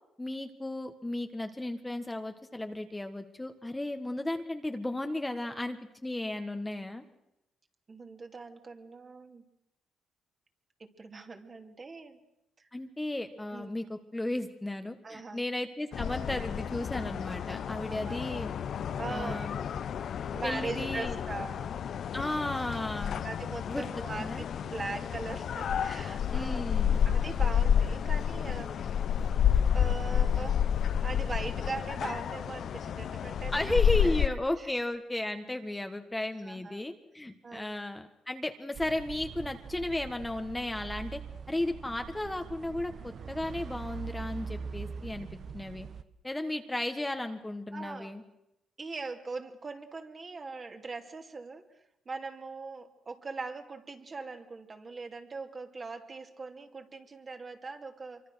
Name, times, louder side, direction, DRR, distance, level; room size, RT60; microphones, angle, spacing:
voice 1, 0.2-7.0 12.7-18.5 19.1-19.5 20.4-21.2 22.1-23.2 23.7-24.4 26.3-27.0 33.5-41.2 41.5-45.9 46.2-48.2, left 1 dB, 10° left, 6 dB, 1.5 m, -34 dB
voice 2, 7.9-9.4 10.8-12.2 12.6-12.7 13.5-13.7 15.0-15.4 17.9-18.2 19.0-19.7 20.3-21.8 23.2-26.7 27.0-29.0 29.7-30.6 31.0-34.7 36.4-36.8 37.4-37.7 47.7-48.1 48.8-51.6 52.1-58.2, right 3 dB, 35° right, 4 dB, 2.6 m, -41 dB
sound 1, 15.9-34.3, left 8 dB, 60° left, 0.8 m, -30 dB
sound 2, 38.7-46.0, right 6 dB, 55° right, 1.2 m, -42 dB
25.5 x 24.0 x 6.4 m, 0.86 s
cardioid pair, 90°, 0 cm